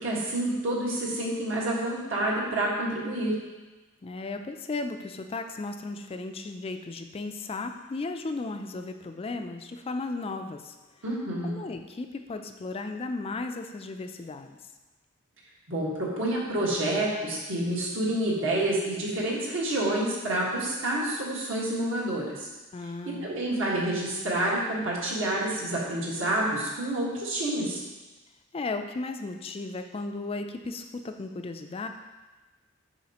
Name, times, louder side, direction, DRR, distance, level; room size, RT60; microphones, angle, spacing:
voice 1, 0.0-3.3 11.0-11.6 15.7-22.5 23.0-27.8, right 1 dB, 65° right, -5 dB, 1.6 m, -28 dB
voice 2, 4.0-10.7 11.4-14.6 22.7-23.3 28.5-31.9, left 3 dB, 25° left, 6 dB, 0.3 m, -35 dB
7.2 x 5.5 x 2.9 m, 1.2 s
head